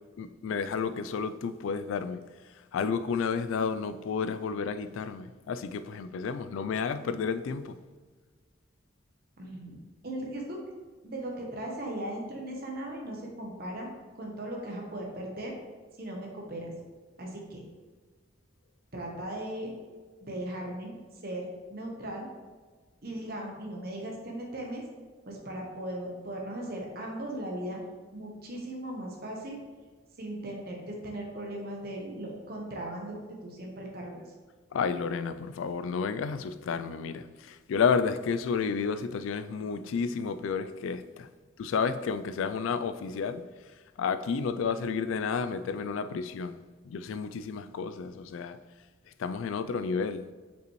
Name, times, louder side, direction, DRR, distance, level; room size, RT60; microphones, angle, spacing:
voice 1, 0.2-2.2 2.7-7.8 34.7-41.3 41.6-43.4 44.0-48.6 49.2-50.3, left 5 dB, 75° left, 0.3 m, -31 dB
voice 2, 9.4-9.8 10.0-10.6 11.0-13.9 14.2-15.6 16.0-16.7 17.2-17.6 18.9-19.7 20.2-20.9 21.2-22.3 23.0-24.8 25.3-27.8 28.1-29.6 30.2-33.1 33.4-34.3, right 1 dB, 50° right, 1.0 m, -38 dB
6.7 x 5.4 x 3.1 m
head